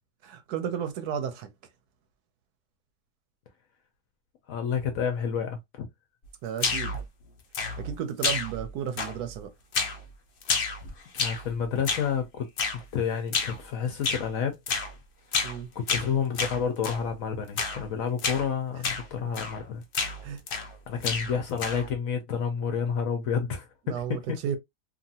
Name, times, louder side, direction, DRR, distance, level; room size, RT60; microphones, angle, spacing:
voice 1, 0.2-1.5 6.4-6.9 7.8-9.5 15.4-15.7 20.2-20.4 23.9-24.6, right 8 dB, 70° right, 1.0 m, -33 dB
voice 2, 4.5-5.9 11.1-12.5 12.9-14.8 15.8-19.8 20.9-24.4, left 7 dB, 70° left, 0.9 m, -30 dB
sound 1, 6.6-7.0 7.5-7.9 8.2-8.7 9.0-9.4 9.7-10.0 10.4-11.5 11.8-12.1 12.6-12.8 13.3-13.6 14.0-14.3 14.7-14.9 15.3-15.6 15.9-17.0 17.6-17.8 18.2-18.4 18.8-19.1 19.3-19.6 19.9-20.7 21.0-21.9, left 4 dB, 85° left, 0.4 m, -30 dB
2.9 x 2.4 x 2.6 m
omnidirectional pair, 1.8 m